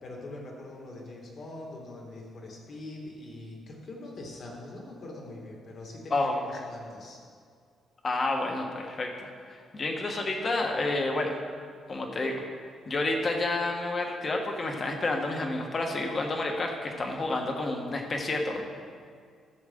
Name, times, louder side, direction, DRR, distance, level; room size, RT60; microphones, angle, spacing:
voice 1, 0.0-7.2, left 2 dB, 55° left, -1 dB, 2.1 m, -43 dB
voice 2, 8.0-9.1 9.5-11.4 11.9-12.4 12.9-18.6, left 2 dB, 35° left, 2 dB, 1.3 m, -29 dB
13.5 x 7.2 x 3.7 m, 2.1 s
cardioid pair, 100°, 0 cm